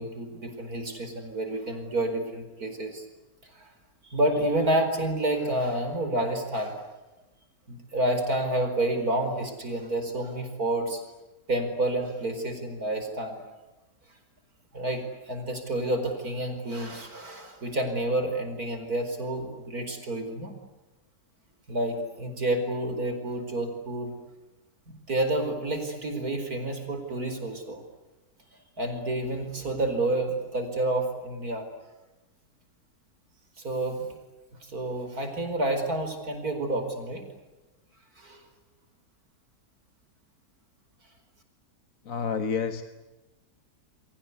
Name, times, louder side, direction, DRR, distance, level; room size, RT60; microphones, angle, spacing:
voice 1, 0.0-3.1 3.4-3.7 4.0-6.8 7.7-11.0 11.5-13.4 14.7-20.5 21.7-24.1 24.9-27.8 28.8-31.6 33.6-34.1 34.6-37.2 38.2-38.4, right 1 dB, 65° right, 6 dB, 5.2 m, -29 dB
voice 2, 42.1-42.8, left 6 dB, 60° left, 9 dB, 1.7 m, -29 dB
29.5 x 23.5 x 8.3 m, 1.1 s
omnidirectional pair, 1.7 m